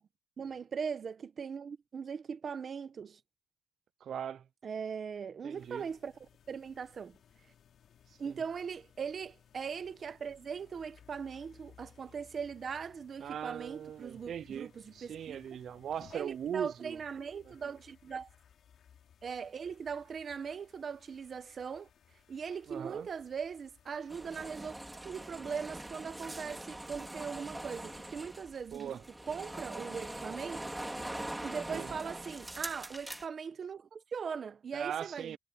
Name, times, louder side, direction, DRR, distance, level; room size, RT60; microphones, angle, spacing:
voice 1, 0.4-3.2 4.6-7.2 8.2-15.4 16.1-18.3 19.2-21.9 22.3-24.7 25.0-29.0 29.3-30.7 31.4-35.4, right 6 dB, 40° right, 1.1 m, -40 dB
voice 2, 4.0-4.4 5.4-5.8 13.2-17.0 22.7-23.1 28.7-29.0 31.7-31.9 34.7-35.4, right 9 dB, 60° right, 0.3 m, -39 dB
sound 1, 5.6-24.8, left 8 dB, 60° left, 4.0 m, -62 dB
sound 2, 24.1-33.3, right 1 dB, 10° right, 2.7 m, -43 dB
cardioid pair, 130°, 0 cm